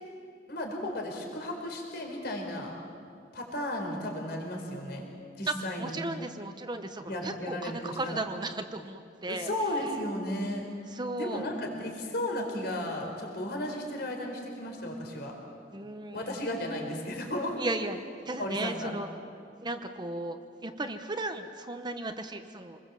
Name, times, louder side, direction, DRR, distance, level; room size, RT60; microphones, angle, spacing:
voice 1, 0.5-2.8 3.3-5.1 5.4-6.0 7.1-8.2 9.3-10.6 11.2-15.3 16.1-17.6 18.4-18.9, left 1 dB, 65° left, 1 dB, 4.5 m, -34 dB
voice 2, 5.5-9.5 9.8-9.9 10.9-11.5 15.7-16.5 17.6-18.0 18.3-19.1 19.6-22.8, right 2 dB, 25° right, 7 dB, 1.0 m, -35 dB
28.0 x 21.0 x 7.6 m, 2.3 s
head